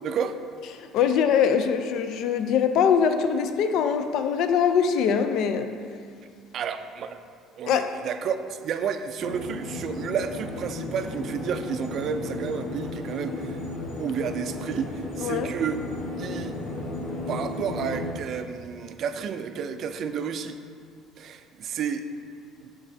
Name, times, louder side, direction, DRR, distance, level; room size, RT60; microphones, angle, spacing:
voice 1, 0.0-0.4 6.5-7.2 7.6-13.6 14.0-15.8 16.2-16.6 17.3-20.6 21.2-22.0 22.6-22.7, right 7 dB, 45° right, 9 dB, 0.4 m, -31 dB
voice 2, 0.8-5.7 7.7-7.9 15.2-15.5, left 7 dB, 60° left, 8 dB, 0.4 m, -23 dB
sound 1, 9.2-18.1, left 2 dB, 80° left, 1.2 m, -34 dB
12.0 x 3.9 x 2.7 m, 2.2 s
cardioid pair, 145°, 0 cm